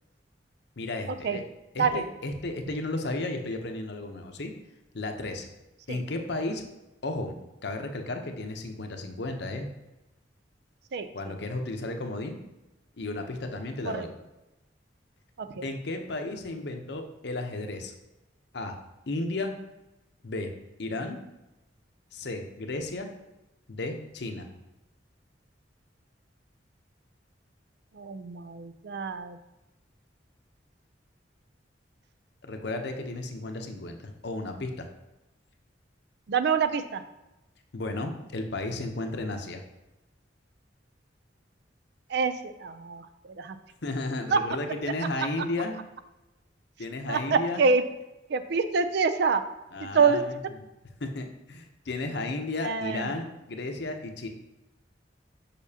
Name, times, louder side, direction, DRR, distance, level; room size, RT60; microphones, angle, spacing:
voice 1, 0.8-1.4 1.7-4.5 4.9-5.5 5.9-6.6 7.0-7.4 7.6-9.7 11.1-12.3 13.0-14.1 15.6-17.9 18.5-18.8 19.1-19.5 20.2-20.5 20.8-21.2 22.1-23.1 23.7-24.5 32.4-34.9 37.7-39.6 43.8-45.8 46.8-47.6 49.7-50.7 51.0-54.3, left 2 dB, 65° left, 4 dB, 0.8 m, -33 dB
voice 2, 28.0-29.4 36.3-37.0 42.1-43.1 43.4-43.6 44.3-44.4 47.1-47.8 48.3-49.4 49.9-50.2 52.6-53.1, right 5 dB, 65° right, 10 dB, 0.5 m, -26 dB
6.8 x 5.7 x 2.8 m, 0.99 s
head